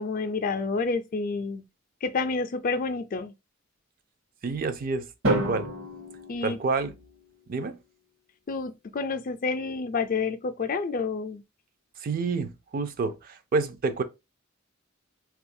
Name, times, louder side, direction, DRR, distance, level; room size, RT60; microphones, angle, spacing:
voice 1, 0.0-1.6 2.0-3.3 6.3-6.6 8.5-11.4, left 4 dB, 45° left, 0.4 m, -29 dB
voice 2, 4.4-5.7 6.4-7.0 7.5-7.8 12.0-14.0, right 4 dB, 45° right, 0.4 m, -29 dB
Drum, 5.2-7.3, right 2 dB, 65° right, 0.9 m, -30 dB
3.8 x 2.3 x 2.6 m
head